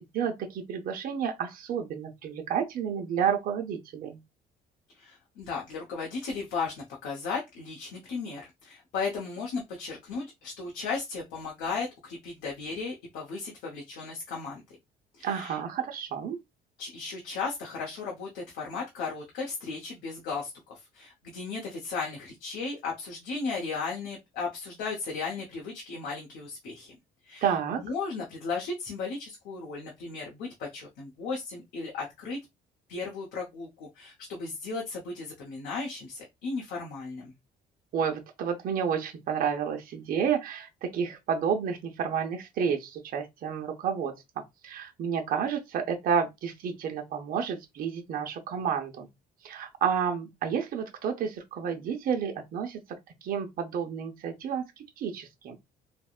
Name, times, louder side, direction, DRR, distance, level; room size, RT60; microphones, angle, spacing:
voice 1, 0.0-4.2 15.2-16.4 27.4-27.8 37.9-49.1 49.4-52.8 53.2-55.7, right 7 dB, 60° right, 0.7 m, -30 dB
voice 2, 5.0-14.6 15.1-15.6 16.8-26.9 27.2-32.4 32.9-37.3, left 4 dB, 85° left, 0.9 m, -35 dB
3.4 x 2.1 x 2.3 m
cardioid pair, 110°, 17 cm